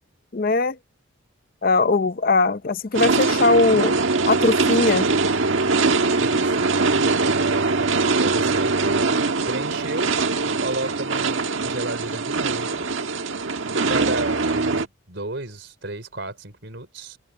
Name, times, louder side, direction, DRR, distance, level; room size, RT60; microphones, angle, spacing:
voice 1, 0.3-0.8 1.6-4.0 4.3-5.1, left 3 dB, 45° left, 0.6 m, -20 dB
sound 1, 2.9-14.9, right 3 dB, 80° right, 1.5 m, -22 dB
voice 2, 6.2-6.8 8.1-8.7 9.5-10.2 10.6-12.9 13.9-17.2, right 2 dB, 60° right, 4.5 m, -32 dB
open air
head